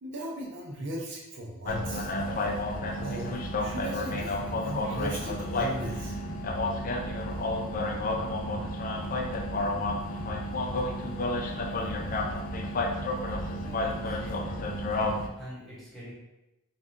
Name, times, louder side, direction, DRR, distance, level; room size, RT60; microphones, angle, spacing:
voice 1, 0.0-2.1 3.0-6.2, right 1 dB, 60° right, -3 dB, 0.7 m, -37 dB
sound 1, 1.7-15.3, left 1 dB, 40° left, 0.4 m, -31 dB
sound 2, 2.0-14.9, right 2 dB, 85° left, 0.7 m, -49 dB
voice 2, 13.6-14.5 15.4-16.1, equal, ahead, -9 dB, 1.3 m, -44 dB
3.8 x 2.5 x 3.6 m, 0.94 s
head